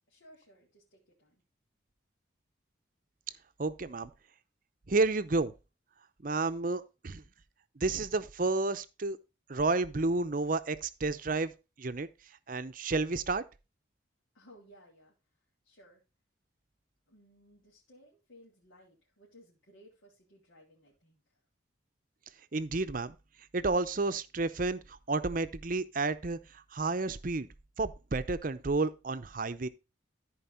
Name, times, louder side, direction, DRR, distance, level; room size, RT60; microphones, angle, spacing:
voice 1, 0.1-1.4 14.3-15.1 15.6-16.0 17.1-21.4, equal, 80° left, 3.3 m, -59 dB
voice 2, 3.6-4.1 4.9-5.5 6.2-7.2 7.8-9.2 9.5-11.5 11.8-12.1 12.5-13.4 22.5-23.1 23.5-26.4 26.7-27.5 27.8-29.7, right 3 dB, 45° right, 0.6 m, -31 dB
14.0 x 4.7 x 4.3 m
head